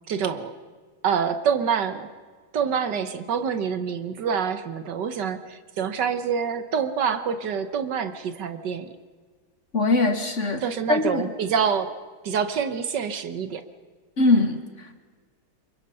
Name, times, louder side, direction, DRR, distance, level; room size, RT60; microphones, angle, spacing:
voice 1, 0.1-0.5 1.0-2.1 2.5-9.0 10.6-11.9 12.2-13.6, right 7 dB, 65° right, 10 dB, 1.6 m, -26 dB
voice 2, 9.7-10.6 10.9-11.3 14.2-14.9, left 2 dB, 40° left, 8 dB, 1.4 m, -22 dB
27.0 x 23.5 x 5.6 m, 1.5 s
omnidirectional pair, 2.2 m